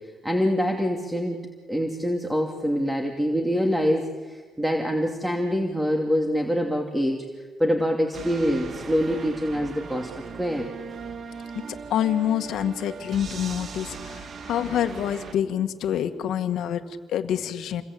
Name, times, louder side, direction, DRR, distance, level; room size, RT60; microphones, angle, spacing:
voice 1, 0.2-7.2 7.6-10.1 10.4-10.7, equal, 5° right, 2 dB, 2.8 m, -25 dB
sound 1, 8.1-15.3, right 5 dB, 55° right, 1.6 m, -38 dB
voice 2, 11.9-17.8, left 10 dB, 80° left, 7 dB, 1.8 m, -27 dB
28.5 x 22.0 x 8.7 m, 1.5 s
cardioid pair, 90°, 0 cm